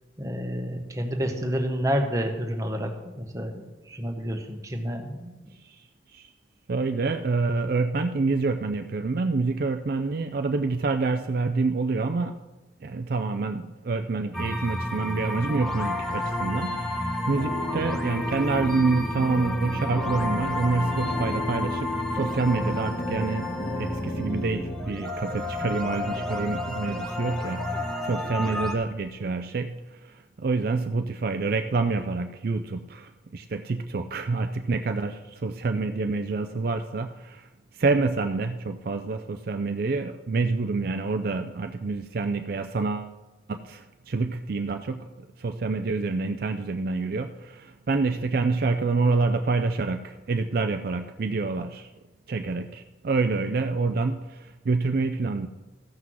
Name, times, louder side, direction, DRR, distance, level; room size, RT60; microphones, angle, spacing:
voice 1, 0.2-5.4, equal, 20° right, 3 dB, 1.1 m, -29 dB
voice 2, 6.7-12.4 12.8-37.5 37.7-43.1 43.5-45.1 45.4-51.9 52.3-55.5, right 3 dB, 55° right, 7 dB, 0.4 m, -27 dB
sound 1, 14.3-28.7, left 1 dB, 5° left, 1.0 m, -31 dB
sound 2, 17.4-24.7, left 1 dB, 50° left, 1.2 m, -34 dB
14.0 x 5.9 x 6.2 m, 1.1 s
head